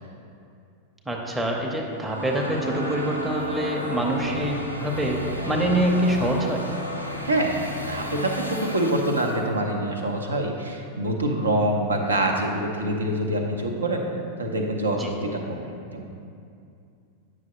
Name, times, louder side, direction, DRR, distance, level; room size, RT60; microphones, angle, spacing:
voice 1, 1.1-5.2 5.5-6.6 15.0-15.1, right 1 dB, 10° right, -1 dB, 0.7 m, -25 dB
sound 1, 1.7-9.4, equal, 90° left, 0.6 m, -32 dB
voice 2, 7.2-7.6 7.9-14.0 14.4-16.0, right 1 dB, 75° right, 2 dB, 0.8 m, -25 dB
8.7 x 6.1 x 2.9 m, 2.5 s
figure-of-eight pair, 90°, 0 cm